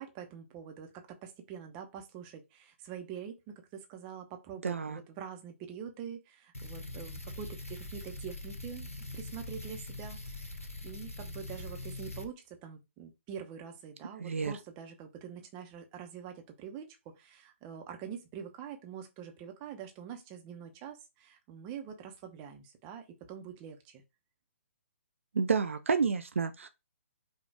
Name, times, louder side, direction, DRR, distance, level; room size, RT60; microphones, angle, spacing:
voice 1, 0.0-8.9 9.1-24.0, right 8 dB, 25° right, 0.7 m, -45 dB
voice 2, 4.6-5.0 14.2-14.5 25.3-26.7, right 5 dB, 70° right, 0.4 m, -30 dB
sound 1, 6.5-12.3, left 2 dB, 85° left, 0.9 m, -42 dB
5.1 x 2.4 x 3.5 m
figure-of-eight pair, 130°, 7 cm